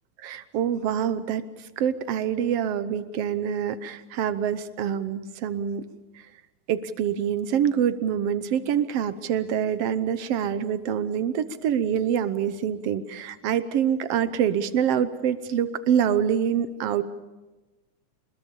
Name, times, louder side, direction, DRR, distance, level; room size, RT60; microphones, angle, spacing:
voice 1, 0.2-5.8 6.1-6.2 6.7-17.0, right 8 dB, 65° right, 13 dB, 1.7 m, -26 dB
26.5 x 21.0 x 7.1 m, 1.2 s
omnidirectional pair, 3.4 m